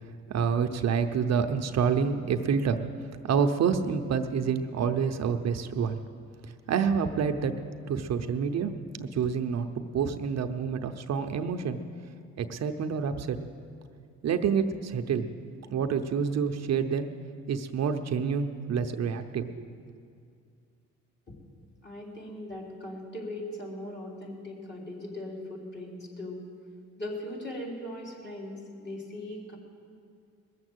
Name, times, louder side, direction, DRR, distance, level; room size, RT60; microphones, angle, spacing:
voice 1, 0.3-2.8 3.3-6.0 6.7-7.5 7.9-8.7 9.0-11.8 12.4-13.4 14.2-15.3 15.7-17.1 17.5-19.7, right 6 dB, 60° right, 7 dB, 0.8 m, -28 dB
voice 2, 21.8-26.5 27.0-29.6, left 1 dB, 35° left, -3 dB, 3.6 m, -39 dB
20.5 x 7.4 x 8.0 m, 2.3 s
cardioid pair, 90°, 30 cm